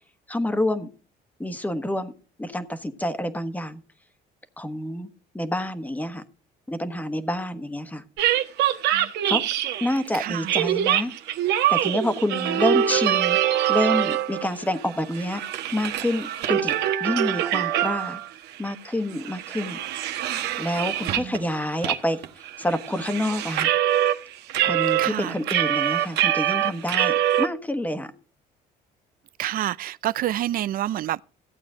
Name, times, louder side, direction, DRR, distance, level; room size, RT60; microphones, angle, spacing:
voice 1, 0.3-0.9 1.4-2.1 2.4-3.8 4.6-5.1 5.3-6.2 6.7-8.0 9.3-9.4 9.8-11.1 11.7-13.4 13.7-15.4 15.7-18.2 18.6-19.8 20.6-23.7 24.6-28.1, left 1 dB, 10° left, 1.3 m, -28 dB
sound 1, 8.2-10.0 10.5-14.5 14.8-18.3 18.6-18.7 19.1-21.4 21.8-22.0 22.2-24.2 24.5-27.5, right 11 dB, 80° right, 1.2 m, -24 dB
voice 2, 10.1-10.5 21.1-21.4 25.0-25.4 29.4-31.2, right 13 dB, 60° right, 0.5 m, -28 dB
15.5 x 8.4 x 3.7 m
cardioid pair, 110°, 17 cm